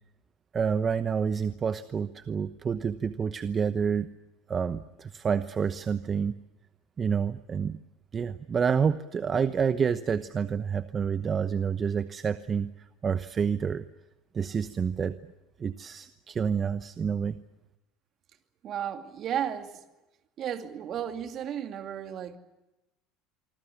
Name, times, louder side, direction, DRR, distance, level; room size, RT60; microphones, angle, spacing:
voice 1, 0.5-4.1 4.5-6.3 7.0-7.8 8.1-12.7 13.0-13.8 14.3-15.1 15.6-17.4, right 6 dB, 30° right, 1.0 m, -28 dB
voice 2, 18.6-19.8 20.4-22.4, right 9 dB, 50° right, 2.5 m, -34 dB
25.5 x 25.0 x 7.1 m
hypercardioid pair, 90°, 0 cm